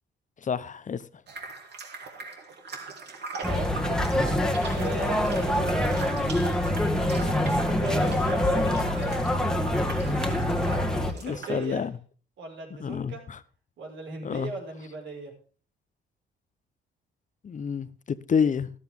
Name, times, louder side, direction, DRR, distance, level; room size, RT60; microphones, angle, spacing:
voice 1, 0.4-1.0 11.2-11.9 12.8-13.4 14.2-14.5 17.4-18.7, left 6 dB, 40° left, 0.8 m, -28 dB
sound 1, 1.3-11.7, right 4 dB, 60° right, 2.6 m, -40 dB
sound 2, 3.4-11.1, left 1 dB, 5° left, 1.7 m, -25 dB
voice 2, 3.4-4.0 4.7-6.0 7.3-9.3 11.0-11.9 12.4-13.2 13.8-15.3, right 3 dB, 75° right, 5.2 m, -38 dB
13.0 x 12.5 x 3.6 m
cardioid pair, 90°, 20 cm